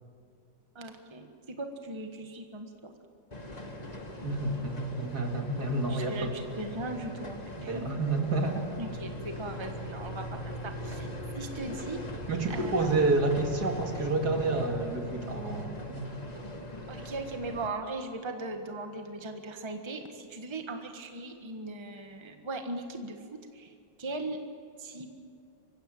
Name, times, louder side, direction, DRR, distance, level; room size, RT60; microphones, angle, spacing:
voice 1, 0.7-2.9 5.9-7.9 8.8-11.1 11.3-12.0 12.5-12.9 16.9-23.7 24.0-24.4 24.8-25.1, right 2 dB, 15° right, 5 dB, 1.4 m, -39 dB
sound 1, 3.3-17.7, equal, 25° left, 1.5 m, -40 dB
voice 2, 4.2-6.3 6.8-6.9 7.6-8.6 12.3-16.1, right 2 dB, 60° right, 3 dB, 2.7 m, -29 dB
24.5 x 16.0 x 9.2 m, 2.4 s
omnidirectional pair, 1.9 m